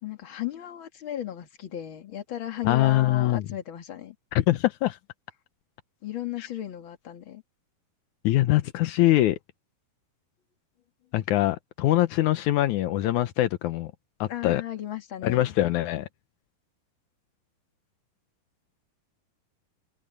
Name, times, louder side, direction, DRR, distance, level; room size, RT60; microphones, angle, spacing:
voice 1, 0.0-4.2 6.0-7.4 14.3-15.5, left 12 dB, 40° left, 2.1 m, -35 dB
voice 2, 2.6-3.4 4.3-5.0 6.4-6.5 8.2-9.4 11.1-13.9 14.2-14.6 15.2-16.1, left 15 dB, 85° left, 1.7 m, -23 dB
omnidirectional pair, 4.5 m